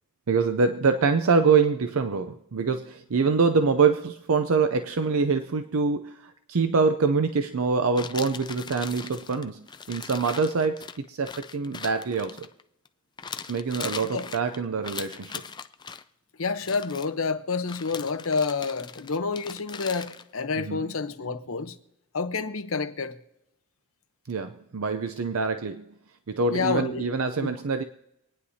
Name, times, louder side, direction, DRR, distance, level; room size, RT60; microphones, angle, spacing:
voice 1, 0.3-12.5 13.5-15.4 20.6-20.9 24.3-25.9 26.3-27.8, right 4 dB, 75° right, 0.6 m, -25 dB
sound 1, 8.0-12.9 13.2-16.0 16.6-17.1 17.6-20.2, left 6 dB, 20° left, 0.4 m, -40 dB
voice 2, 16.4-21.7 22.1-23.2 26.5-27.0 27.4-27.6, left 4 dB, 70° left, 0.9 m, -29 dB
25.5 x 9.7 x 2.8 m
head